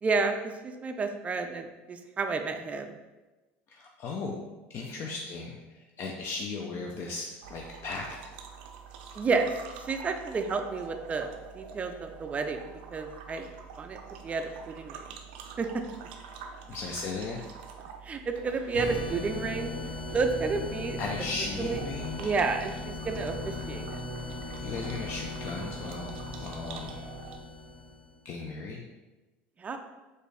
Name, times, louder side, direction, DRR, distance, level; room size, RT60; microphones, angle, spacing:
voice 1, 0.0-2.9 9.2-9.5 9.8-12.6 12.9-13.5 13.8-15.0 15.6-15.7 18.0-19.7 20.1-21.0 21.6-21.8 22.2-23.8 29.6-29.8, right 4 dB, 25° right, 6 dB, 0.3 m, -31 dB
voice 2, 3.7-4.4 4.7-8.1 16.7-17.4 21.0-22.3 24.6-27.0 28.2-28.8, left 3 dB, 45° left, 0 dB, 0.4 m, -36 dB
sound 1, 7.4-27.4, right 6 dB, 85° right, 0.4 m, -47 dB
sound 2, 18.7-28.1, left 2 dB, 80° left, 1.2 m, -38 dB
4.2 x 2.6 x 3.3 m, 1.1 s
supercardioid pair, 115°, 6 cm